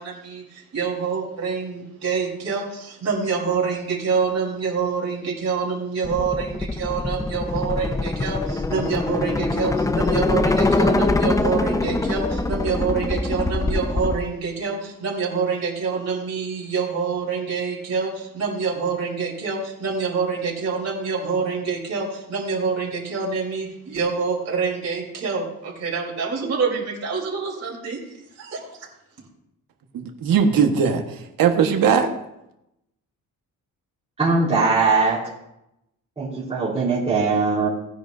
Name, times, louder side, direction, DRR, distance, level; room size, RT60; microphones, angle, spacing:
voice 1, 0.0-28.0 28.4-28.9, right 5 dB, 50° right, -4 dB, 3.8 m, -26 dB
sound 1, 6.0-14.2, left 2 dB, 10° left, 0.4 m, -23 dB
voice 2, 29.9-32.1, right 6 dB, 75° right, 4 dB, 1.4 m, -19 dB
voice 3, 34.2-35.3 36.2-37.7, right 4 dB, 20° right, -9 dB, 4.0 m, -20 dB
18.0 x 10.5 x 2.6 m, 0.85 s
cardioid pair, 150°, 34 cm